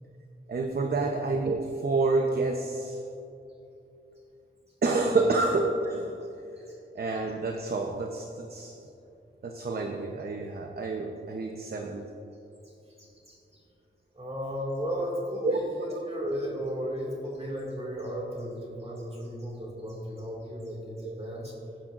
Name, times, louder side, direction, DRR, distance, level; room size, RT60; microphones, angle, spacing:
voice 1, 0.5-3.0 4.8-6.3 6.9-8.8 9.4-12.2 15.4-16.1 18.9-19.0 21.0-21.1, right 3 dB, 50° right, 3 dB, 0.8 m, -28 dB
voice 2, 12.6-13.6 14.1-21.6, equal, 30° right, -2 dB, 2.2 m, -35 dB
16.0 x 10.0 x 2.5 m, 2.8 s
wide cardioid pair, 95°, 20 cm